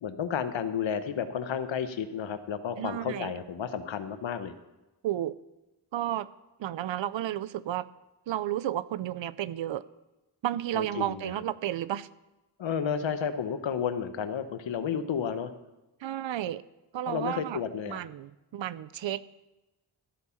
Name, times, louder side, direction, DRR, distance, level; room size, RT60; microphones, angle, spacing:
voice 1, 0.0-4.5 10.7-11.3 12.6-15.5 17.1-18.0, left 7 dB, 90° left, 10 dB, 1.0 m, -32 dB
voice 2, 2.8-3.3 5.0-5.4 5.9-6.3 6.6-7.9 8.3-9.8 10.4-12.1 16.0-16.6 16.9-17.6 17.9-19.2, right 12 dB, 85° right, 17 dB, 0.6 m, -32 dB
13.5 x 8.4 x 5.7 m, 1.0 s
wide cardioid pair, 105°, 44 cm